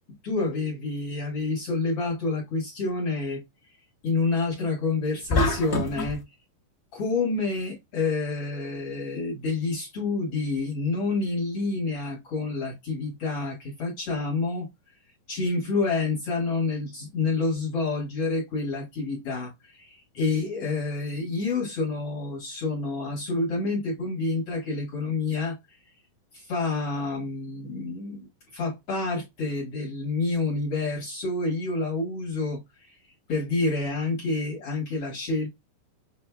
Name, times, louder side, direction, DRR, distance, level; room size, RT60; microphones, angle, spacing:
voice 1, 0.2-3.4 4.0-6.2 6.9-14.7 15.3-25.6 26.3-28.3 28.5-33.0 33.3-35.5, left 3 dB, 50° left, 2.4 m, -28 dB
sound 1, 5.3-6.2, left 2 dB, 20° left, 1.8 m, -25 dB
7.2 x 3.3 x 2.3 m
omnidirectional pair, 4.0 m